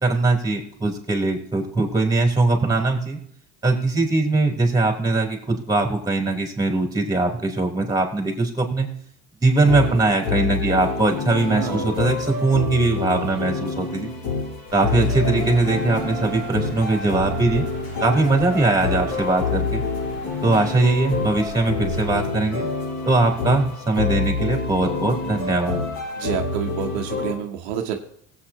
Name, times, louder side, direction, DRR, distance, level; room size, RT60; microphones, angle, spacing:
voice 1, 0.0-3.2 3.6-8.9 9.4-14.1 14.7-17.6 18.0-19.8 20.4-22.7 23.1-25.8, right 2 dB, 10° right, 1 dB, 3.5 m, -21 dB
sound 1, 9.7-27.3, left 3 dB, 85° left, 4.0 m, -27 dB
voice 2, 11.4-12.0 26.1-28.0, right 8 dB, 85° right, 3 dB, 1.1 m, -28 dB
sound 2, 14.7-22.2, equal, 45° left, 3.7 m, -39 dB
19.0 x 8.3 x 2.9 m, 0.68 s
supercardioid pair, 80°, 32 cm